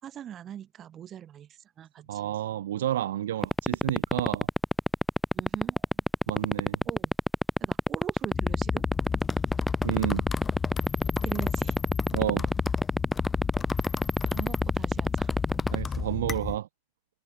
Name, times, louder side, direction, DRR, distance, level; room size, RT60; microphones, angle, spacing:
voice 1, 0.0-2.3 5.3-6.0 6.8-7.1 7.6-8.8 11.2-11.8 14.3-15.7, right 10 dB, 25° right, 4.7 m, -42 dB
voice 2, 2.1-4.5 6.3-6.8 9.8-10.2 12.1-12.5 15.7-16.7, right 12 dB, 60° right, 1.2 m, -30 dB
sound 1, 3.4-15.7, left 1 dB, ahead, 0.5 m, -23 dB
sound 2, 8.3-16.6, left 5 dB, 15° left, 4.3 m, -33 dB
figure-of-eight pair, 90°, 0 cm